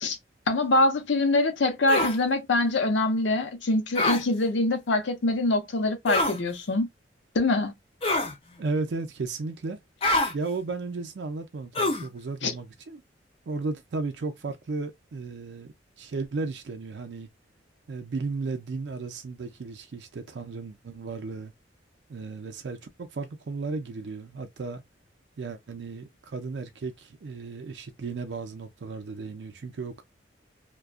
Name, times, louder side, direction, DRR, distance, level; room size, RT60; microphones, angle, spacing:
voice 1, 0.5-6.9 7.3-7.7 12.4-12.5, left 2 dB, 80° left, 0.7 m, -24 dB
sound 1, 1.9-2.2 4.0-4.2 6.1-6.4 8.0-8.4 10.0-10.3 11.7-12.1, left 2 dB, 30° left, 0.5 m, -25 dB
voice 2, 8.6-9.8 10.3-13.0 13.5-17.3 17.9-21.5 22.1-24.8 25.4-30.0, right 3 dB, 70° right, 0.4 m, -34 dB
2.3 x 2.2 x 2.4 m
head